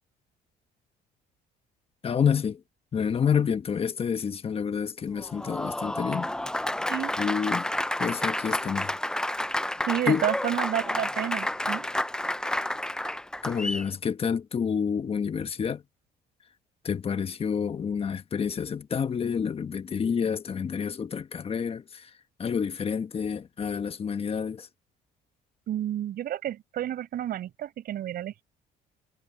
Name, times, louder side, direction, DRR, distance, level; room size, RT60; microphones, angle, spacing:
voice 1, 2.0-2.6 2.9-6.3 7.2-7.7 8.0-9.0 10.1-10.2 13.4-15.8 16.8-22.1 22.4-24.7, left 7 dB, 35° left, 1.3 m, -28 dB
Applause, 5.2-13.9, left 1 dB, 5° left, 0.4 m, -30 dB
voice 2, 9.9-11.8 25.7-28.4, right 11 dB, 65° right, 5.0 m, -30 dB
cardioid pair, 110°, 17 cm